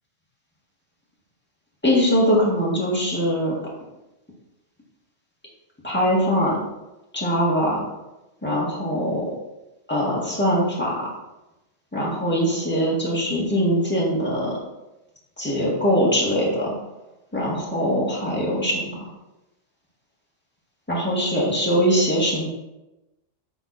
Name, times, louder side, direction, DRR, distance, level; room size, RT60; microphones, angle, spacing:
voice 1, 1.8-3.6 5.8-6.6 7.1-7.9 8.4-9.3 9.9-11.1 11.9-14.6 15.4-16.7 17.3-19.1 20.9-22.5, equal, 10° left, -5 dB, 2.0 m, -22 dB
7.7 x 4.9 x 4.2 m, 0.99 s
omnidirectional pair, 1.3 m